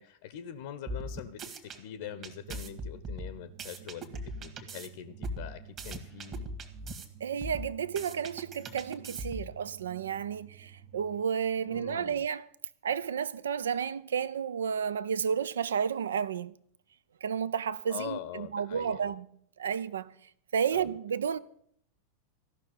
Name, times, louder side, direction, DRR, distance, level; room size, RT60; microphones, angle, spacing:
voice 1, 0.0-6.5 11.6-12.3 17.9-19.1 20.7-20.8, left 10 dB, 50° left, 0.8 m, -43 dB
sound 1, 0.9-1.8 2.2-4.9 5.2-7.1 7.4-9.6, right 1 dB, 30° right, 1.7 m, -40 dB
sound 2, 2.0-11.2, right 10 dB, 45° right, 1.0 m, -53 dB
voice 2, 7.2-12.5 12.8-16.5 17.2-19.3 19.6-20.1 20.5-21.4, right 7 dB, 65° right, 0.5 m, -32 dB
14.5 x 6.1 x 9.2 m
figure-of-eight pair, 90°, 0 cm